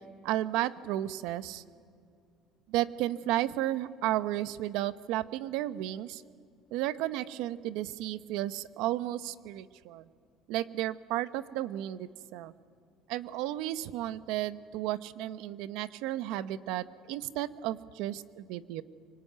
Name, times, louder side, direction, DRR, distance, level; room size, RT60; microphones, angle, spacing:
voice 1, 0.2-1.6 2.7-6.2 6.7-10.1 10.5-12.5 13.1-18.8, right 14 dB, 75° right, 14 dB, 0.9 m, -33 dB
24.5 x 24.5 x 9.4 m, 2.4 s
cardioid pair, 150°, 0 cm